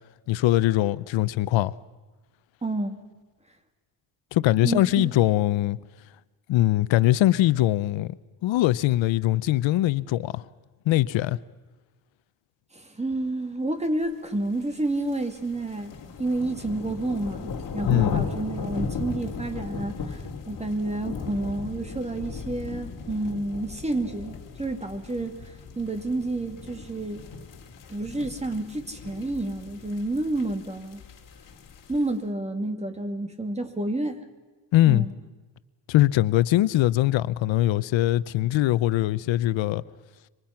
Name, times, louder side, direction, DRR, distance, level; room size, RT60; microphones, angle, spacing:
voice 1, 0.3-1.7 4.3-5.8 6.5-8.2 8.4-10.4 10.9-11.4 17.9-18.2 34.7-35.1 35.9-39.8, left 15 dB, 90° left, 0.8 m, -22 dB
voice 2, 2.6-3.0 4.6-5.1 12.7-15.9 16.2-27.2 27.9-31.0 31.9-34.2 34.9-35.1, right 2 dB, 15° right, 2.3 m, -30 dB
sound 1, 14.6-32.1, left 5 dB, 45° left, 3.4 m, -37 dB
27.5 x 25.0 x 5.8 m
cardioid pair, 145°, 45 cm